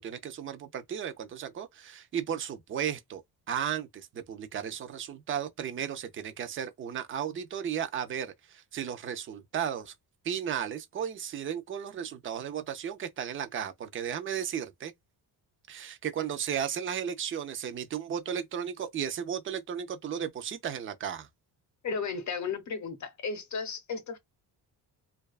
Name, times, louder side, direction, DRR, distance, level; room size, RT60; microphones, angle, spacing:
voice 1, 0.0-3.2 3.5-9.9 10.2-14.9 15.7-21.3, right 8 dB, 30° right, 0.4 m, -34 dB
voice 2, 21.8-24.2, left 5 dB, 45° left, 0.7 m, -34 dB
2.6 x 2.3 x 2.3 m
cardioid pair, 125°, 42 cm